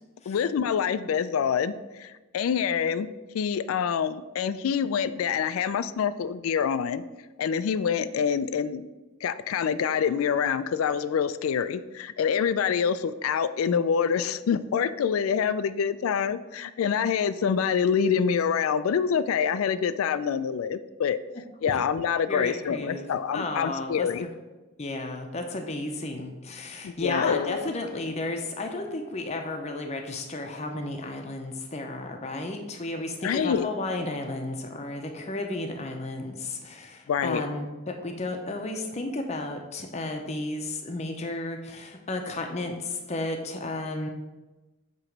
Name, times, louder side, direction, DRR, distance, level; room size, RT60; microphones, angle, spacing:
voice 1, 0.3-3.1 3.3-7.0 7.4-8.8 9.2-21.2 21.6-24.3 26.8-27.7 33.2-33.7 37.1-37.4, left 7 dB, 90° left, 14 dB, 0.3 m, -26 dB
voice 2, 22.3-23.1 23.3-24.3 24.8-44.1, left 2 dB, 30° left, 4 dB, 0.6 m, -33 dB
7.9 x 3.0 x 5.9 m, 1.1 s
head